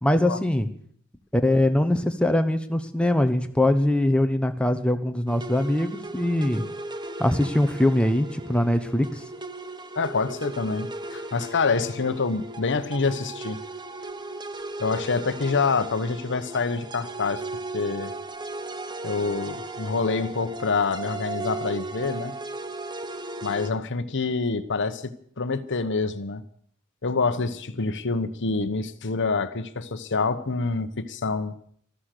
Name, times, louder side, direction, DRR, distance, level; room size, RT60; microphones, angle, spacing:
voice 1, 0.0-0.7 1.3-6.6 7.2-9.2, left 1 dB, 5° left, 7 dB, 1.0 m, -22 dB
sound 1, 5.3-23.7, right 2 dB, 20° right, 0.8 m, -36 dB
voice 2, 10.0-13.6 14.8-17.4 17.7-18.1 19.0-22.3 23.4-26.4 27.0-31.5, left 4 dB, 55° left, 12 dB, 1.0 m, -26 dB
13.5 x 13.0 x 6.7 m, 0.62 s
head